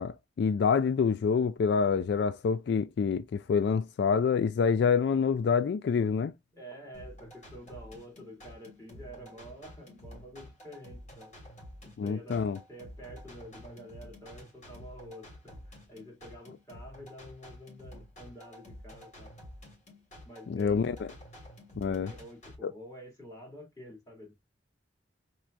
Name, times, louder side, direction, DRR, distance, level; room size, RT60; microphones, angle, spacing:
voice 1, 0.0-6.3 12.0-12.6 20.5-21.0 21.8-22.1 22.6-22.7, left 6 dB, 65° left, 0.3 m, -27 dB
voice 2, 6.5-11.3 11.8-12.4 12.7-19.3 20.2-20.9 21.9-24.3, equal, 20° left, 2.4 m, -48 dB
sound 1, 6.9-22.6, left 1 dB, 40° left, 3.1 m, -50 dB
4.5 x 4.3 x 2.4 m
head